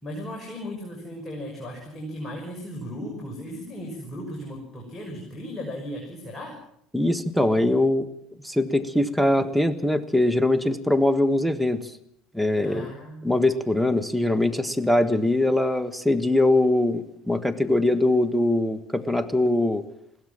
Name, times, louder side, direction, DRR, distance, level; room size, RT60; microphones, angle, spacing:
voice 1, 0.0-6.6 12.6-13.3, equal, 25° left, 0 dB, 5.9 m, -36 dB
voice 2, 6.9-8.1 8.4-11.8 12.3-12.9 13.2-19.8, left 1 dB, ahead, 13 dB, 1.7 m, -22 dB
21.0 x 16.5 x 7.5 m, 0.74 s
figure-of-eight pair, 60°, 0 cm